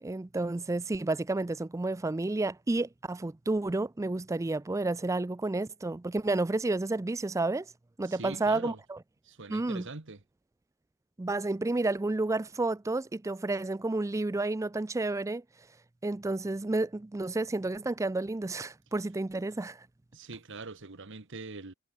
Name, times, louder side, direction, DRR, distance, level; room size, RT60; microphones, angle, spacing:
voice 1, 0.0-7.7 8.0-9.0 9.5-9.9 11.2-15.4 16.0-19.9, right 2 dB, 15° right, 0.4 m, -31 dB
voice 2, 8.0-8.8 9.2-10.2 20.1-21.7, right 3 dB, 60° right, 1.4 m, -43 dB
head